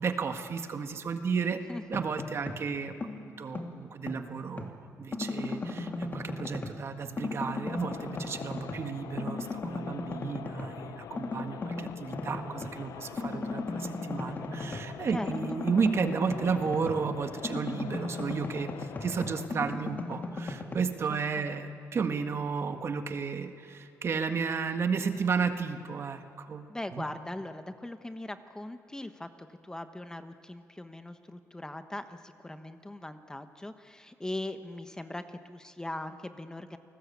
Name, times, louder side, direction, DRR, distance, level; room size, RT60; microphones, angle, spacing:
voice 1, 0.0-1.6 1.9-26.6 26.9-27.1, right 5 dB, 45° right, 7 dB, 1.6 m, -33 dB
sound 1, 1.7-2.7 3.0-4.8 5.1-6.9 7.2-8.9 9.2-10.8 11.2-12.8 13.2-17.1 17.4-20.8, left 2 dB, 30° left, 2.6 m, -37 dB
sound 2, 7.7-19.5, left 10 dB, 70° left, 0.6 m, -45 dB
voice 2, 15.1-15.6 21.4-22.0 26.7-36.8, left 1 dB, 10° left, 8 dB, 1.1 m, -40 dB
29.0 x 19.5 x 8.5 m, 2.7 s
cardioid pair, 110°, 6 cm